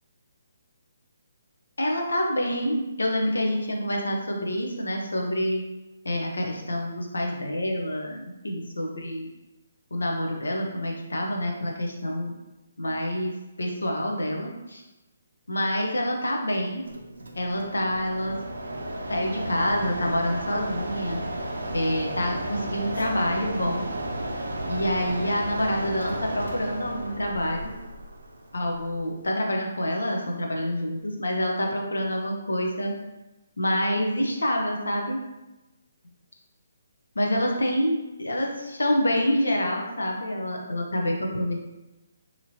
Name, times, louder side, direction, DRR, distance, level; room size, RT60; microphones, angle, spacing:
voice 1, 1.8-5.6 6.0-9.3 9.9-12.3 12.8-14.8 15.5-16.8 17.3-18.4 19.1-21.2 21.7-23.9 24.7-27.7 28.5-32.9 33.6-35.2 37.2-41.6, equal, 85° left, 0 dB, 0.6 m, -27 dB
Mechanisms, 16.8-29.2, right 1 dB, 80° right, 0.4 m, -33 dB
2.8 x 2.5 x 2.8 m, 1.0 s
figure-of-eight pair, 145°, 0 cm